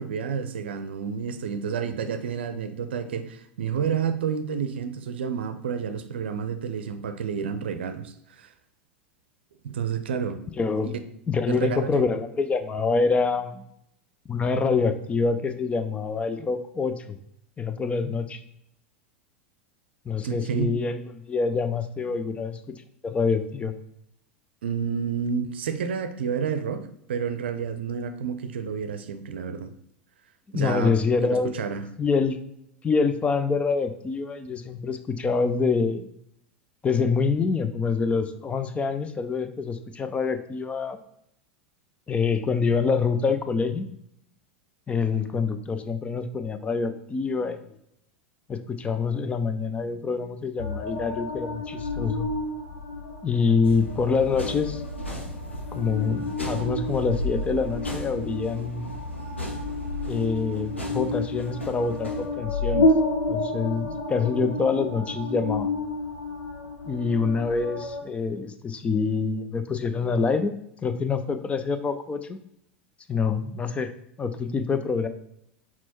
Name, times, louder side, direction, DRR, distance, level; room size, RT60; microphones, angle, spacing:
voice 1, 0.0-8.5 9.6-10.4 10.8-10.9 11.5-12.1 20.2-20.8 24.6-29.7 30.5-30.9 31.2-31.8, right 7 dB, 65° right, 10 dB, 0.6 m, -30 dB
voice 2, 10.6-10.9 11.3-13.7 14.3-17.2 17.6-18.4 20.1-22.6 23.0-23.7 30.5-31.5 32.0-32.4 32.8-36.1 36.8-41.0 42.1-43.9 44.9-47.6 48.5-52.3 53.2-54.8 55.7-58.9 60.1-62.9 63.3-65.7 66.8-70.5 70.8-72.4 73.1-73.9 74.2-75.1, left 5 dB, 20° left, 10 dB, 0.6 m, -26 dB
sound 1, 50.6-68.0, left 2 dB, 70° left, 1.2 m, -30 dB
sound 2, 53.6-62.3, left 1 dB, 90° left, 1.5 m, -37 dB
6.2 x 4.4 x 4.3 m, 0.75 s
figure-of-eight pair, 85°, 6 cm